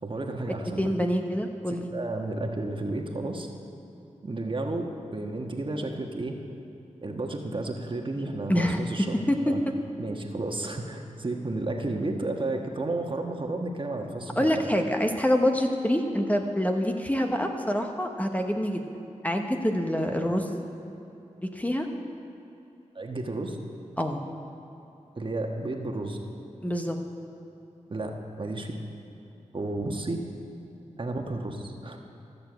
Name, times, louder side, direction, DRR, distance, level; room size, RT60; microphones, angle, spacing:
voice 1, 0.0-0.9 1.7-3.5 4.2-6.4 7.0-9.2 9.5-9.6 10.0-14.6 20.1-20.2 22.9-23.6 25.2-26.2 27.9-28.8 29.5-30.2 31.0-32.0, right 2 dB, 40° right, 2 dB, 1.3 m, -32 dB
voice 2, 0.8-1.9 8.5-8.8 9.3-9.5 14.4-18.8 19.2-20.6 21.4-21.9 24.0-24.2 26.6-27.0, equal, 10° left, 4 dB, 0.9 m, -26 dB
14.0 x 6.8 x 7.9 m, 2.9 s
cardioid pair, 55°, 13 cm